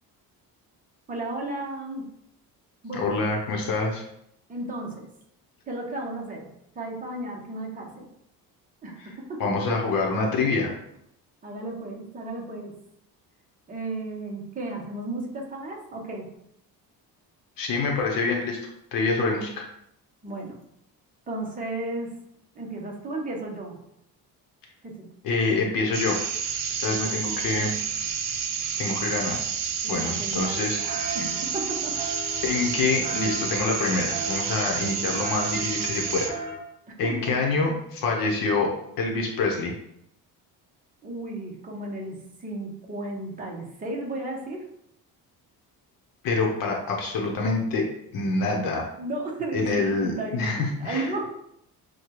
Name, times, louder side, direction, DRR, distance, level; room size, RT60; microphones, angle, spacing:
voice 1, 1.1-2.0 2.8-3.2 4.5-5.1 5.7-6.5 6.7-8.1 8.8-9.7 11.4-12.7 13.7-16.3 20.2-20.6 21.3-22.1 22.5-23.8 24.8-25.1 26.8-27.2 29.8-32.0 36.9-37.6 41.0-44.6 49.0-51.3, right 2 dB, 20° right, -1 dB, 0.8 m, -34 dB
voice 2, 2.9-4.1 9.0-9.1 9.4-10.7 17.6-18.6 18.9-19.7 25.2-26.2 26.7-27.7 28.8-29.4 29.9-30.8 32.4-36.3 37.0-39.7 46.2-47.9 48.1-48.9 49.5-51.1, left 3 dB, 65° left, 1 dB, 0.8 m, -26 dB
sound 1, 25.9-36.3, right 7 dB, 60° right, 0.6 m, -30 dB
sound 2, 30.8-36.6, right 1 dB, 25° left, 0.8 m, -37 dB
6.4 x 2.2 x 3.0 m, 0.75 s
cardioid pair, 170°, 37 cm